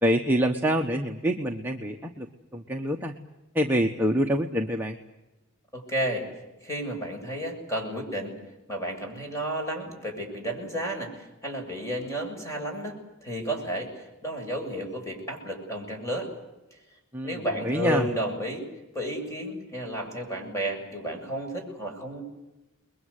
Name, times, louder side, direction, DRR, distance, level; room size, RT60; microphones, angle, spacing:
voice 1, 0.0-3.1 3.5-5.0 17.1-18.1, equal, 10° right, 1 dB, 1.1 m, -26 dB
voice 2, 5.7-6.3 6.6-8.3 8.7-16.3 17.2-18.7 18.9-22.2, equal, 15° left, 2 dB, 7.2 m, -32 dB
30.0 x 22.0 x 8.3 m, 1.0 s
head